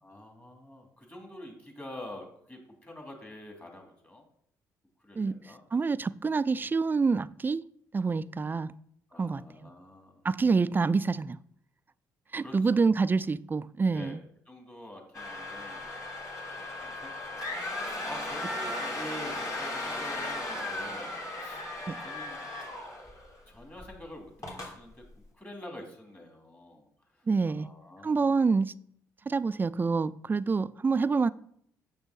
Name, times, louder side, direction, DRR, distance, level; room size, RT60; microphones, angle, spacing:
voice 1, 0.0-4.2 5.0-5.6 9.1-10.2 12.4-12.8 13.8-14.2 14.5-15.9 16.2-21.6 22.0-22.4 23.5-25.0 25.4-26.8 27.2-28.3, left 1 dB, 20° left, 2 dB, 2.6 m, -47 dB
voice 2, 5.7-7.6 7.9-8.7 9.2-9.7 10.2-11.4 12.3-14.2 21.9-22.0 27.3-27.7 28.0-28.7 29.3-31.3, right 4 dB, 20° right, 18 dB, 0.3 m, -27 dB
sound 1, 15.1-23.4 23.8-23.9 24.4-24.7, left 2 dB, 40° left, 2.9 m, -36 dB
6.8 x 6.2 x 4.0 m, 0.67 s
hypercardioid pair, 45°, 9 cm